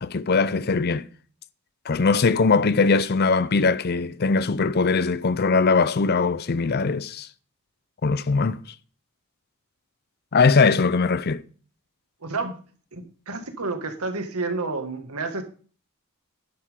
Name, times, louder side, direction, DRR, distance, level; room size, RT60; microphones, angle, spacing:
voice 1, 0.0-1.1 1.9-7.3 8.0-8.6 10.3-11.4, left 4 dB, 45° left, 0.5 m, -21 dB
voice 2, 12.2-12.6 12.9-15.4, right 3 dB, 80° right, 2.0 m, -30 dB
11.5 x 10.0 x 3.7 m
head